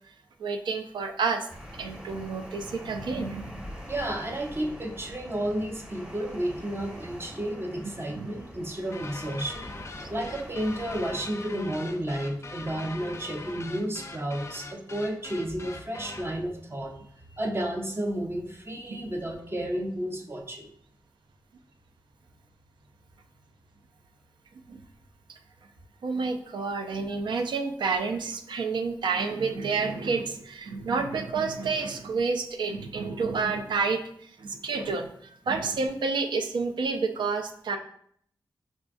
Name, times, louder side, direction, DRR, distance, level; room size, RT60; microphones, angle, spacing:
voice 1, 0.4-1.5 1.8-3.6 8.1-8.3 18.9-19.1 24.7-24.8 25.3-25.4 26.0-37.8, right 4 dB, 80° right, 6 dB, 0.4 m, -29 dB
sound 1, 1.5-11.2, equal, 10° right, 1.0 m, -44 dB
voice 2, 3.9-9.7 10.1-17.0 17.3-20.7, right 1 dB, 30° right, 2 dB, 0.7 m, -32 dB
sound 2, 8.9-16.4, left 3 dB, 35° left, 0.4 m, -42 dB
5.0 x 2.3 x 2.5 m, 0.65 s
cardioid pair, 55°, 8 cm